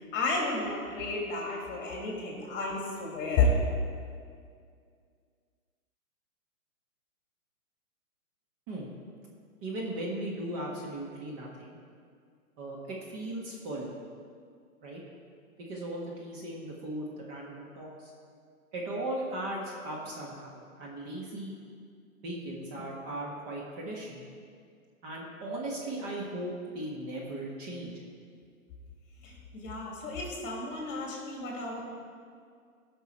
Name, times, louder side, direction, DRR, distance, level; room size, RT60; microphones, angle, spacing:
voice 1, 0.1-3.5 29.2-31.8, left 3 dB, 25° left, -2 dB, 2.7 m, -31 dB
voice 2, 9.6-11.8 12.6-13.9 14.8-15.0 15.6-18.1 18.7-21.6 22.2-24.2 25.0-28.0, right 1 dB, 30° right, -3 dB, 1.6 m, -37 dB
15.5 x 6.0 x 4.3 m, 2.2 s
hypercardioid pair, 130°, 43 cm